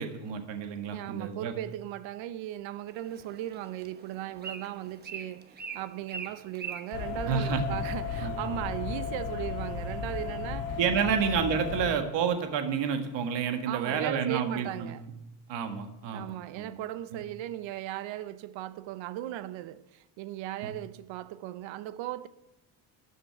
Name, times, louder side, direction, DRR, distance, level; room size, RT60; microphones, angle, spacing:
voice 1, 0.0-1.5 7.3-7.8 8.2-8.3 10.8-15.0 15.5-16.8 17.1-17.2 20.6-20.7, right 7 dB, 70° right, 1.8 m, -30 dB
voice 2, 0.9-11.2 13.7-15.0 16.1-22.3, right 13 dB, 85° right, 0.9 m, -37 dB
Bird, 2.9-8.0, right 5 dB, 20° right, 1.1 m, -44 dB
sound 1, 6.9-11.9, left 6 dB, 50° left, 5.2 m, -34 dB
13.0 x 6.6 x 8.9 m
cardioid pair, 150°, 45 cm